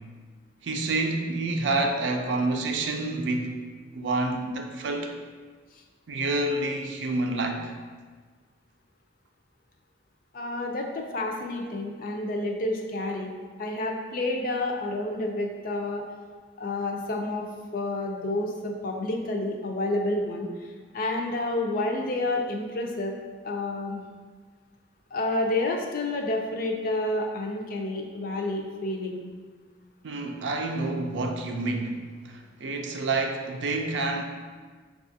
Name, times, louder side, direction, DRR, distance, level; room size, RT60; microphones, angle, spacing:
voice 1, 0.6-3.6 3.9-5.1 6.1-7.7 30.0-32.0 32.2-34.2, right 2 dB, 80° right, 4 dB, 0.4 m, -28 dB
voice 2, 10.3-13.3 13.6-16.0 16.6-17.5 17.7-20.5 20.9-23.2 23.4-24.0 25.1-29.3, left 2 dB, 50° left, 1 dB, 0.5 m, -29 dB
5.7 x 2.4 x 2.7 m, 1.5 s
head